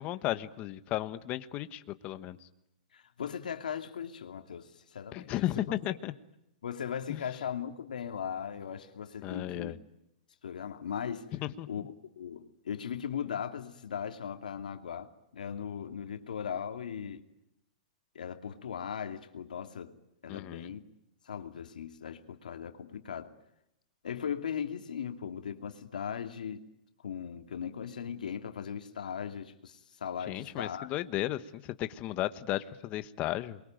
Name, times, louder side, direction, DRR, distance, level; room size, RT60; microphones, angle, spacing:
voice 1, 0.0-2.5 5.1-6.1 7.1-7.2 9.2-9.8 11.3-11.9 20.3-20.7 30.3-33.6, left 14 dB, 30° left, 1.3 m, -35 dB
voice 2, 2.9-5.3 5.7-5.8 6.6-9.8 10.4-11.3 11.7-17.2 18.1-19.9 20.2-20.8 21.3-23.3 24.0-26.6 27.0-30.9, left 8 dB, 90° left, 2.6 m, -38 dB
28.0 x 23.0 x 9.2 m
hypercardioid pair, 150°, 4 cm